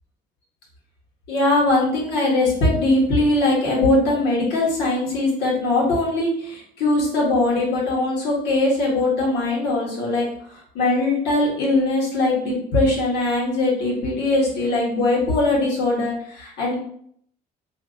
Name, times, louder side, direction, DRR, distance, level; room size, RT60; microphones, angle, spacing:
voice 1, 1.3-10.3 10.7-16.8, left 2 dB, 80° left, -4 dB, 1.5 m, -21 dB
2.8 x 2.7 x 3.7 m, 0.65 s
cardioid pair, 85°, 17 cm